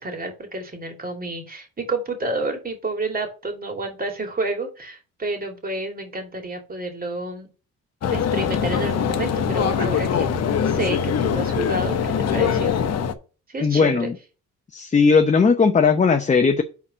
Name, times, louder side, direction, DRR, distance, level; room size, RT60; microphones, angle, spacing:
voice 1, 0.0-7.5 8.1-10.3 10.6-12.8 13.5-14.1, right 2 dB, 30° right, 2.5 m, -29 dB
sound 1, 8.0-13.1, left 7 dB, 55° left, 1.0 m, -22 dB
voice 2, 13.6-14.1 14.7-16.6, left 5 dB, 25° left, 0.8 m, -17 dB
5.9 x 4.2 x 6.2 m
cardioid pair, 90°, 30 cm